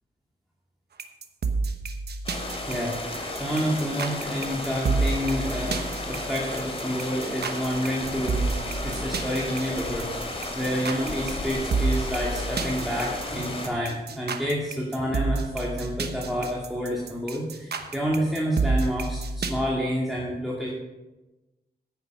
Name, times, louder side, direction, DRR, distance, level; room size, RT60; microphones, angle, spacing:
sound 1, 1.0-19.5, right 4 dB, 75° right, 1.1 m, -30 dB
sound 2, 2.2-13.7, left 1 dB, 35° left, 2.5 m, -33 dB
voice 1, 2.7-10.1 10.5-20.7, equal, ahead, -5 dB, 2.3 m, -29 dB
10.0 x 9.4 x 5.4 m, 1.1 s
wide cardioid pair, 95°, 17 cm